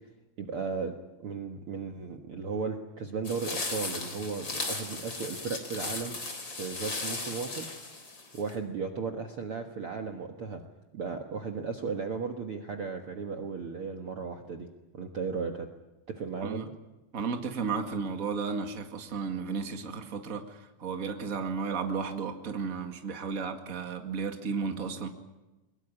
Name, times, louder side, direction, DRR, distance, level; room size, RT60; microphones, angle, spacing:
voice 1, 0.4-6.2 6.5-7.7 8.3-10.6 10.9-14.7 14.9-15.7 16.1-16.7, right 5 dB, 50° right, 4 dB, 2.1 m, -35 dB
sound 1, 3.2-8.5, left 3 dB, 35° left, 4.4 m, -36 dB
voice 2, 17.1-25.1, right 5 dB, 30° right, 5 dB, 2.1 m, -33 dB
23.0 x 21.5 x 9.8 m, 1.1 s
omnidirectional pair, 3.7 m